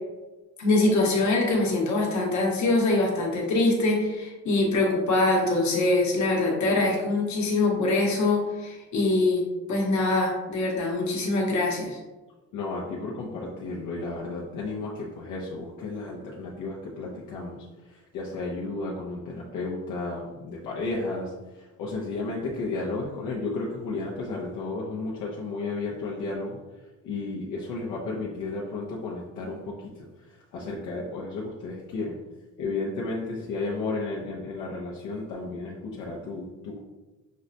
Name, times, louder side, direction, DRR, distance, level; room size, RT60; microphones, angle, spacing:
voice 1, 0.6-12.0, left 2 dB, 70° left, -1 dB, 1.2 m, -24 dB
voice 2, 12.5-26.6 27.0-30.1 30.5-32.2 32.6-36.8, left 3 dB, 90° left, -5 dB, 0.7 m, -33 dB
6.2 x 2.1 x 2.7 m, 1.2 s
cardioid pair, 90°, 30 cm